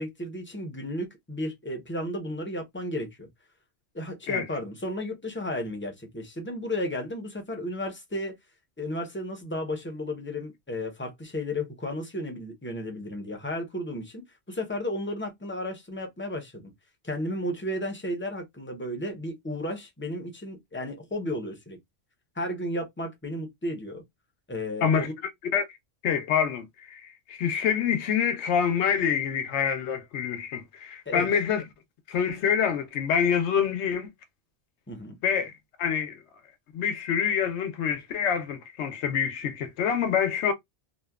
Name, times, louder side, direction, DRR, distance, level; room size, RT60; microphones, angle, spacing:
voice 1, 0.0-3.3 3.9-8.3 8.8-16.7 17.0-21.8 22.4-24.0 24.5-25.1 31.1-31.3 34.9-35.2, left 1 dB, 15° left, 0.5 m, -33 dB
voice 2, 26.0-31.7 32.1-34.1 35.2-35.5 35.8-36.2 36.7-40.5, left 7 dB, 85° left, 0.9 m, -26 dB
2.7 x 2.1 x 2.2 m
omnidirectional pair, 1.1 m